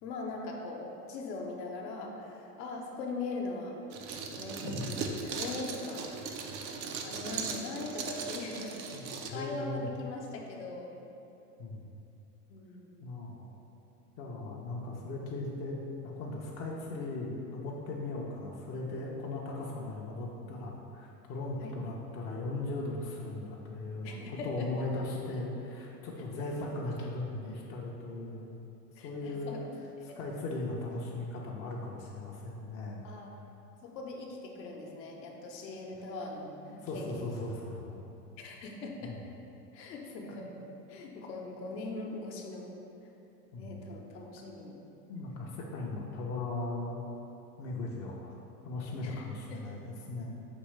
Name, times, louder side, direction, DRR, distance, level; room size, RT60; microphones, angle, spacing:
voice 1, 0.0-3.8 4.3-6.1 6.7-11.0 12.5-13.1 21.6-21.8 24.0-24.7 26.2-26.3 29.0-29.7 30.1-30.2 33.0-33.3 33.8-37.3 38.4-39.1 39.7-40.6 40.9-42.7 43.6-44.8 49.0-49.6, left 3 dB, 80° left, 0 dB, 0.8 m, -41 dB
sound 1, 3.9-9.3, right 5 dB, 85° right, 0.6 m, -38 dB
voice 2, 8.9-9.9 11.6-11.9 13.0-13.5 14.2-15.8 16.0-28.6 29.0-29.6 30.2-33.0 36.7-38.0 39.0-39.1 43.5-43.9 45.1-47.1 47.6-48.4 48.6-50.4, left 2 dB, 30° left, -3 dB, 0.4 m, -38 dB
5.2 x 2.8 x 3.1 m, 2.8 s
hypercardioid pair, 90°, 50 cm